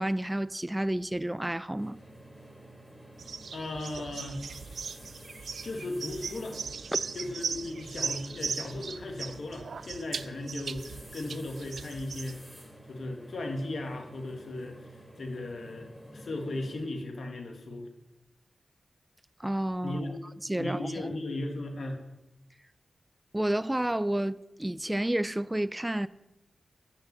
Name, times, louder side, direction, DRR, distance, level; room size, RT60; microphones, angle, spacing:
voice 1, 0.0-2.0 6.9-7.0 19.4-20.0 20.4-21.1 23.3-26.1, right 1 dB, 15° right, 0.3 m, -30 dB
sound 1, 1.8-16.9, right 1 dB, 15° left, 3.8 m, -50 dB
sound 2, 3.2-12.4, right 5 dB, 80° right, 0.4 m, -38 dB
voice 2, 3.5-4.4 5.6-6.6 7.2-12.4 12.9-14.8 15.2-17.9 19.8-20.2 20.6-22.0, left 2 dB, 70° left, 1.7 m, -36 dB
11.5 x 5.8 x 6.8 m
cardioid pair, 50°, 0 cm